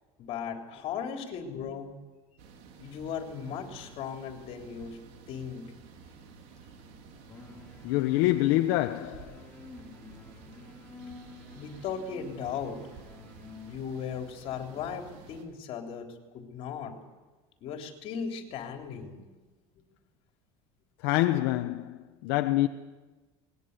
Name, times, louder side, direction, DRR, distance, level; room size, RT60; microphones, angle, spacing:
voice 1, 0.2-2.0 2.8-5.0 5.3-5.6 11.5-12.9 13.7-16.1 16.3-17.0 17.6-19.2, left 7 dB, 50° left, 3.6 m, -37 dB
sound 1, 2.4-15.4, right 4 dB, 60° right, 3.9 m, -51 dB
sound 2, 7.3-13.7, left 3 dB, 10° left, 4.5 m, -49 dB
voice 2, 7.8-9.4 21.0-22.7, left 16 dB, 75° left, 1.0 m, -26 dB
22.0 x 19.5 x 8.3 m
cardioid pair, 150°, 13 cm